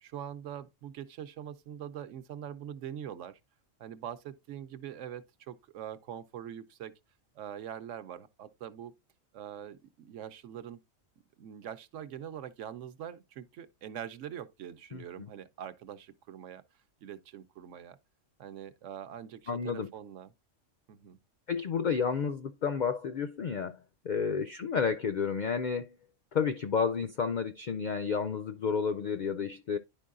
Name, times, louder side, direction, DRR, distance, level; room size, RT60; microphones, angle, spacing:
voice 1, 0.0-3.4 3.8-6.9 7.4-8.9 9.3-10.8 11.4-16.6 17.0-18.0 18.4-20.3 20.9-21.2 24.2-24.4, right 9 dB, 75° right, 1.0 m, -43 dB
voice 2, 14.9-15.3 19.5-19.9 21.5-25.9 26.3-29.8, left 6 dB, 70° left, 0.4 m, -31 dB
11.0 x 4.6 x 2.4 m
omnidirectional pair, 1.3 m